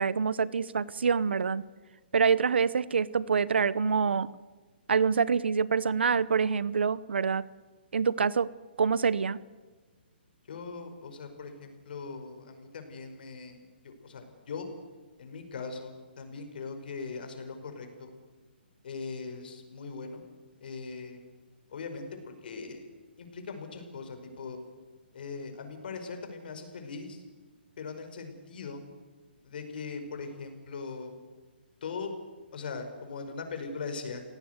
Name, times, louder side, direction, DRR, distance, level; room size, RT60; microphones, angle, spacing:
voice 1, 0.0-1.6 2.1-4.3 4.9-7.5 7.9-8.5 8.8-9.4, right 6 dB, 80° right, 19 dB, 0.9 m, -26 dB
voice 2, 10.5-13.6 13.8-14.7 15.2-18.1 18.8-20.2 20.6-21.2 21.7-22.8 23.2-24.6 25.1-27.2 27.8-28.8 29.4-31.1 31.8-32.1 32.5-34.2, left 4 dB, 55° left, 6 dB, 5.2 m, -40 dB
26.5 x 17.5 x 8.2 m, 1.3 s
hypercardioid pair, 155°, 6 cm